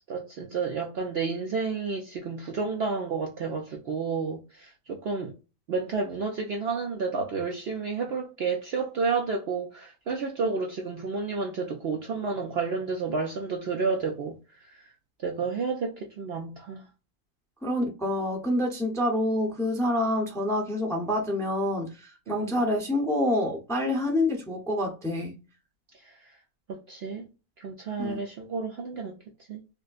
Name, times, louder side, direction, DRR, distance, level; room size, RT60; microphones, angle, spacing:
voice 1, 0.1-5.3 5.7-14.4 14.6-14.9 15.2-16.9 22.3-22.6 26.7-27.3 27.6-29.2 29.5-29.6, right 4 dB, 60° right, 0.7 m, -31 dB
voice 2, 17.6-25.4 28.0-28.2, left 1 dB, 5° left, 0.7 m, -27 dB
4.9 x 2.1 x 2.4 m
omnidirectional pair, 1.5 m